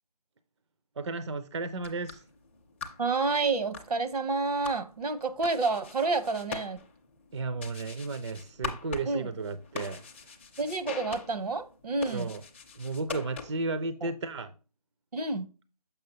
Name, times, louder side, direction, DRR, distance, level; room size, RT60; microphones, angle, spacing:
voice 1, 1.0-2.2 7.3-10.0 12.1-12.4 12.8-14.5, right 3 dB, 45° right, 0.4 m, -34 dB
sound 1, 1.7-13.8, left 5 dB, 20° left, 0.5 m, -43 dB
voice 2, 3.0-6.8 9.1-9.3 10.6-12.3 14.0-14.1 15.1-15.5, right 3 dB, 75° right, 0.9 m, -29 dB
6.7 x 5.7 x 2.8 m
figure-of-eight pair, 155°, 20 cm